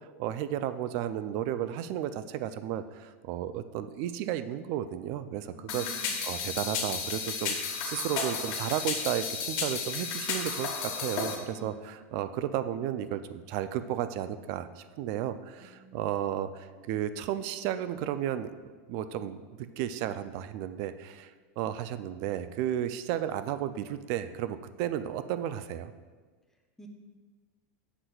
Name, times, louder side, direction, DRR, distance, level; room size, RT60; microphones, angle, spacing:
voice 1, 0.2-10.7 11.0-18.5 18.9-25.9, right 11 dB, 50° right, 12 dB, 0.3 m, -33 dB
voice 2, 5.5-6.2 11.5-11.7 12.0-12.2 15.6-16.0 26.8-26.9, equal, 5° left, 2 dB, 0.6 m, -49 dB
sound 1, 5.7-11.3, left 5 dB, 50° left, 1.3 m, -33 dB
7.9 x 5.9 x 2.3 m, 1.4 s
supercardioid pair, 140°, 8 cm